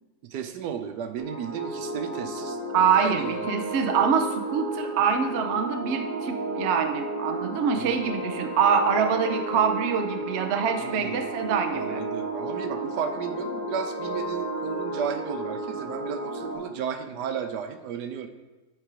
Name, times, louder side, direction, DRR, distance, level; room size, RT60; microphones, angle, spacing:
voice 1, 0.3-2.6 3.0-3.5 7.8-7.9 10.8-11.2 11.7-18.3, right 7 dB, 80° right, 8 dB, 1.2 m, -33 dB
sound 1, 1.2-16.6, right 1 dB, 10° left, 1.5 m, -33 dB
voice 2, 2.7-12.0, right 6 dB, 60° right, 5 dB, 0.8 m, -25 dB
9.7 x 3.5 x 4.8 m, 1.2 s
omnidirectional pair, 1.8 m